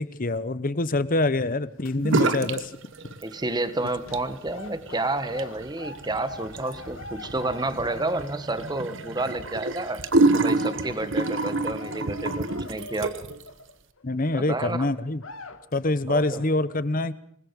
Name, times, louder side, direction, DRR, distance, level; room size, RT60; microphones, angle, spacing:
voice 1, 0.0-2.8 14.0-15.2 15.7-17.1, left 2 dB, 40° left, 15 dB, 1.0 m, -25 dB
sound 1, 1.5-2.4 2.7-2.9 3.8-14.3 14.7-14.8 15.1-15.8 16.1-16.5, left 3 dB, 65° left, 1.9 m, -44 dB
sound 2, 2.0-2.7 2.9-3.6 4.0-13.4, right 2 dB, 60° right, 1.3 m, -27 dB
voice 2, 3.2-10.0 10.3-13.1 14.3-14.9 16.1-16.4, right 2 dB, 20° right, 12 dB, 1.3 m, -30 dB
27.0 x 20.5 x 5.3 m, 0.68 s
head